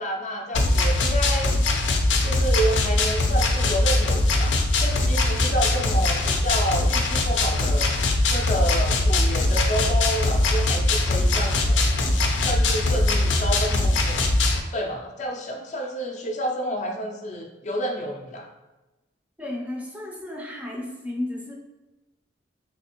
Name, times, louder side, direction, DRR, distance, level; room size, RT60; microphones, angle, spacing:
voice 1, 0.0-1.5 2.2-7.9 8.3-11.9 12.4-14.2 14.7-18.5, right 1 dB, 40° left, 1 dB, 0.5 m, -29 dB
sound 1, 0.5-14.6, left 2 dB, 85° left, 0.5 m, -21 dB
voice 2, 19.4-21.5, left 1 dB, 10° right, -1 dB, 0.5 m, -33 dB
3.3 x 3.3 x 2.9 m, 1.1 s
head